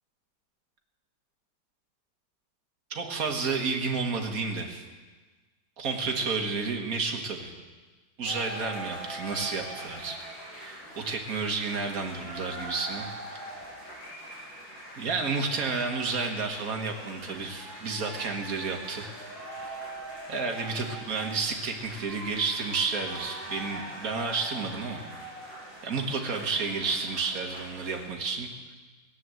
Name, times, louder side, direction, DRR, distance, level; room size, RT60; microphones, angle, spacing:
voice 1, 2.9-4.8 5.8-7.5 8.2-10.2 10.5-13.1 15.0-19.1 20.3-25.0 25.8-28.7, right 4 dB, 50° right, 3 dB, 2.0 m, -31 dB
sound 1, 8.2-28.1, right 1 dB, 70° left, 7.6 m, -42 dB
17.5 x 9.7 x 7.8 m, 1.3 s
omnidirectional pair, 2.1 m